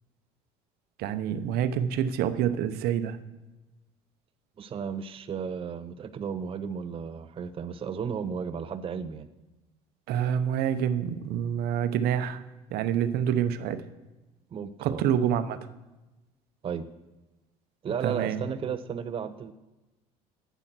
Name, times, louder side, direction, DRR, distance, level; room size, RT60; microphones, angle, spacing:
voice 1, 1.0-3.2 10.1-12.4 12.7-13.8 14.8-15.6 18.0-18.4, right 9 dB, 65° right, 11 dB, 0.8 m, -27 dB
voice 2, 4.6-9.3 14.5-15.0 16.6-16.8 17.8-19.5, right 7 dB, 30° right, 9 dB, 0.6 m, -34 dB
8.3 x 7.9 x 6.1 m, 1.1 s
supercardioid pair, 85°, 18 cm